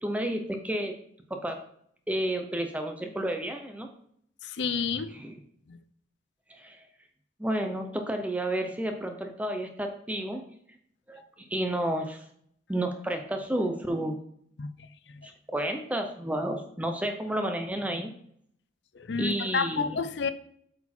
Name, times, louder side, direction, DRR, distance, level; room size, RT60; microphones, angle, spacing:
voice 1, 0.0-0.9 1.3-1.6 2.1-3.9 5.1-5.4 6.5-6.9 7.4-10.5 11.1-12.3 12.7-14.2 15.2-18.1 19.2-20.0, right 1 dB, 10° right, 5 dB, 0.6 m, -31 dB
voice 2, 4.4-5.1 5.7-5.8 14.6-14.7 19.0-20.3, left 5 dB, 65° left, 12 dB, 0.5 m, -30 dB
8.3 x 4.3 x 4.3 m, 0.68 s
head